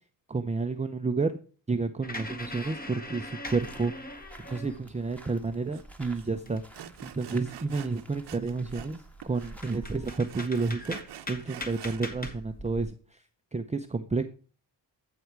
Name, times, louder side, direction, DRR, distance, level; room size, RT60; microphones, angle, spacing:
voice 1, 0.3-1.4 1.7-4.1 4.4-6.6 7.0-11.0 11.3-13.2 13.5-14.2, right 4 dB, 15° right, 7 dB, 0.7 m, -30 dB
sound 1, 2.0-5.0 5.5-7.0 7.4-7.5 7.9-8.4 9.0-9.1 9.4-12.9, left 1 dB, 20° left, 1.9 m, -41 dB
sound 2, 3.4-10.2, right 1 dB, 5° left, 1.7 m, -49 dB
Sawing, 5.7-5.8 6.1-6.3 6.7-9.0 9.2-12.1, right 11 dB, 65° right, 0.9 m, -46 dB
14.0 x 5.0 x 4.6 m, 0.39 s
cardioid pair, 70°, 45 cm